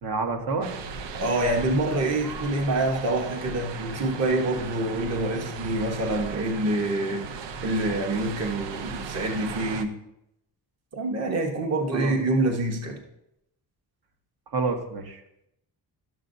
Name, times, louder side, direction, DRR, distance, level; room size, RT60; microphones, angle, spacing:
voice 1, 0.0-0.7 11.9-12.2 14.5-15.5, right 4 dB, 60° right, 3 dB, 1.3 m, -29 dB
sound 1, 0.6-9.8, right 5 dB, 80° right, 0.8 m, -37 dB
voice 2, 1.1-7.2 7.6-9.9 10.9-13.0, right 2 dB, 35° right, 3 dB, 1.1 m, -26 dB
12.0 x 6.7 x 2.7 m, 0.82 s
cardioid pair, 115°, 43 cm